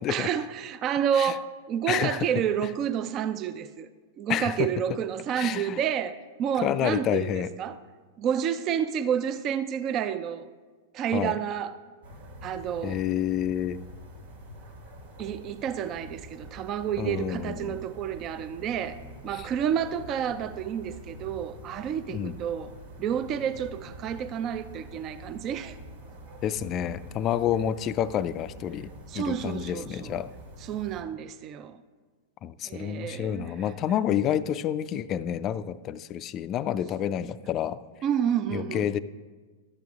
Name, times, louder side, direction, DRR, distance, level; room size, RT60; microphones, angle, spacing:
voice 1, 0.1-3.9 4.2-7.8 8.2-10.5 10.9-11.8 12.4-13.0 15.2-19.0 19.2-22.7 23.0-25.8 29.1-30.2 30.6-31.8 32.6-33.6 38.0-38.9, right 9 dB, 40° right, 0.4 m, -30 dB
voice 2, 1.9-2.3 4.3-4.7 5.4-5.8 6.6-7.5 11.1-11.4 12.8-13.8 17.0-17.8 22.1-22.3 26.4-28.9 29.1-30.3 32.4-37.8 38.5-39.0, left 10 dB, 35° left, 0.3 m, -29 dB
sound 1, 12.0-31.0, right 1 dB, 80° right, 1.7 m, -46 dB
12.0 x 7.7 x 3.5 m
hypercardioid pair, 115°, 0 cm